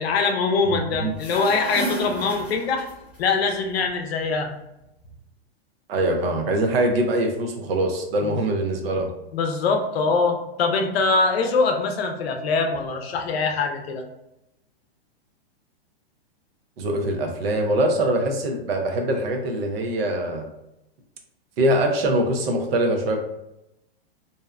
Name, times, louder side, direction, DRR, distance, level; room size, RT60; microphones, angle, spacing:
voice 1, 0.0-2.9 3.2-4.5 8.3-8.4 9.3-14.0, left 4 dB, 70° left, 4 dB, 0.6 m, -23 dB
voice 2, 0.6-1.1 5.9-9.1 16.8-20.5 21.6-23.2, right 1 dB, 65° right, 3 dB, 0.6 m, -23 dB
sound 1, 1.0-3.2, right 1 dB, 5° right, 0.3 m, -32 dB
2.6 x 2.1 x 2.3 m, 0.87 s
hypercardioid pair, 145°, 32 cm